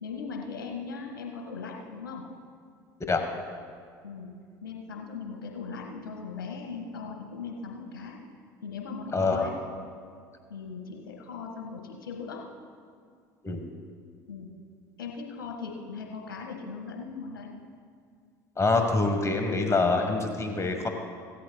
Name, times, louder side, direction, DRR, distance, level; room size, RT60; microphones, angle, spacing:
voice 1, 0.0-2.2 4.0-4.3 4.6-8.2 8.6-9.5 10.5-12.5 14.3-14.5 15.0-17.5, left 5 dB, 80° left, 1 dB, 1.8 m, -39 dB
voice 2, 9.1-9.5 13.4-13.6 18.6-20.9, left 3 dB, 25° left, 5 dB, 1.5 m, -25 dB
17.5 x 13.5 x 2.3 m, 2.1 s
hypercardioid pair, 65°, 11 cm